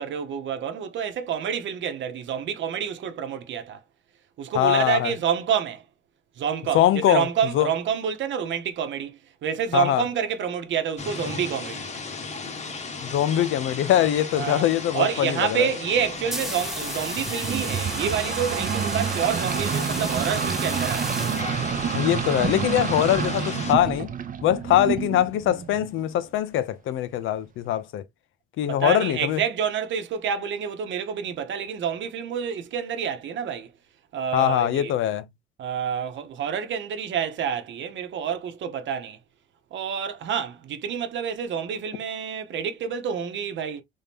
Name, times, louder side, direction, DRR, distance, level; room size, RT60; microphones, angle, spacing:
voice 1, 0.0-3.8 4.4-5.8 6.4-11.9 14.4-14.7 14.9-21.3 28.7-33.7 34.1-34.9 35.6-39.2 39.7-43.8, right 8 dB, 70° right, 0.9 m, -28 dB
voice 2, 4.5-5.1 6.7-7.3 7.5-7.7 9.7-10.0 13.0-15.7 21.9-24.1 24.4-28.0 28.6-29.4 34.3-35.2, left 12 dB, 85° left, 0.6 m, -22 dB
sound 1, 11.0-23.7, left 4 dB, 35° left, 0.9 m, -35 dB
sound 2, 16.0-22.0, right 1 dB, ahead, 0.6 m, -35 dB
sound 3, 16.6-26.0, right 7 dB, 45° right, 0.6 m, -29 dB
3.5 x 2.8 x 3.5 m
cardioid pair, 90°, 20 cm